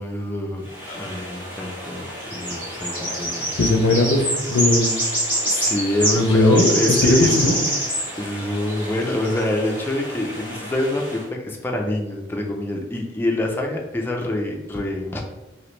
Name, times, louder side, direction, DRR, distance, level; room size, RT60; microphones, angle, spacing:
voice 1, 0.0-3.5 5.4-7.4 8.2-15.2, left 1 dB, 10° left, 1 dB, 0.3 m, -26 dB
sound 1, 0.7-11.2, right 1 dB, 10° right, 1.2 m, -27 dB
voice 2, 3.6-4.2 4.5-5.2 6.1-7.6, left 2 dB, 85° left, 2 dB, 0.5 m, -18 dB
2.9 x 2.9 x 3.1 m, 0.99 s
head